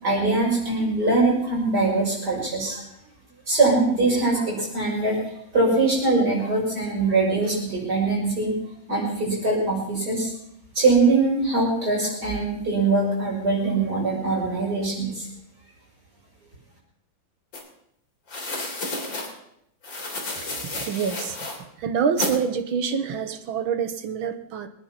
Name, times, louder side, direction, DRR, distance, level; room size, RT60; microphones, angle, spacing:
voice 1, 0.0-2.8 3.5-5.2 5.5-8.5 8.9-10.3 10.7-15.3, right 3 dB, 55° right, -4 dB, 6.6 m, -22 dB
sound 1, 17.5-17.6 18.3-19.3 19.8-21.6 22.2-22.4, left 2 dB, 70° left, 4.3 m, -31 dB
voice 2, 20.4-21.4 21.8-24.7, right 6 dB, 85° right, 9 dB, 2.0 m, -26 dB
23.5 x 9.9 x 5.8 m, 0.75 s
omnidirectional pair, 2.1 m